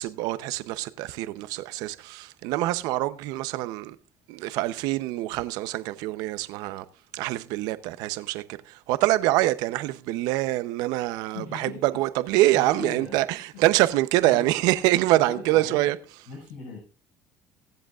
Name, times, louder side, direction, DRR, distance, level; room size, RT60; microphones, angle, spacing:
voice 1, 0.0-4.0 4.3-6.8 7.1-16.0, right 16 dB, 80° right, 0.8 m, -25 dB
voice 2, 11.3-11.8 12.5-13.2 13.5-13.6 14.2-14.5 15.1-15.9 16.3-16.8, left 4 dB, 90° left, 6.0 m, -39 dB
22.5 x 7.9 x 2.5 m
cardioid pair, 105°, 7 cm